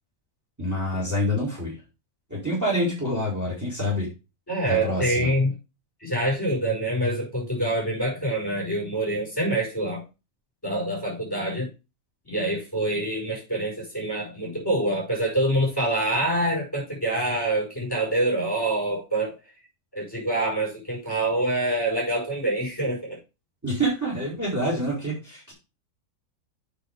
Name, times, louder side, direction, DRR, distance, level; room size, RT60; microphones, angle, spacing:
voice 1, 0.6-1.7 2.3-4.1 4.6-5.3 23.6-25.5, equal, 10° right, -4 dB, 4.3 m, -27 dB
voice 2, 4.5-5.5 6.0-10.0 10.6-11.7 12.3-19.4 19.9-23.2, right 1 dB, 15° left, -4 dB, 5.9 m, -26 dB
7.8 x 6.1 x 5.1 m, 0.28 s
omnidirectional pair, 1.5 m